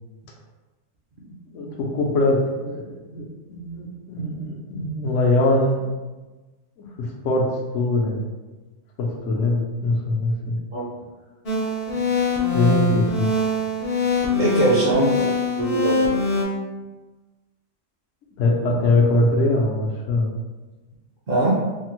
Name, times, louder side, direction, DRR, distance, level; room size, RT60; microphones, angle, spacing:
voice 1, 1.5-5.8 6.8-7.5 7.7-8.2 9.0-10.6 12.5-13.3 18.4-20.3, left 2 dB, 75° left, -1 dB, 0.9 m, -22 dB
sound 1, 11.5-16.4, left 3 dB, 40° left, 0.6 m, -23 dB
voice 2, 14.4-16.1 21.3-21.6, right 2 dB, 55° right, -5 dB, 0.7 m, -21 dB
3.2 x 2.0 x 2.9 m, 1.2 s
omnidirectional pair, 1.3 m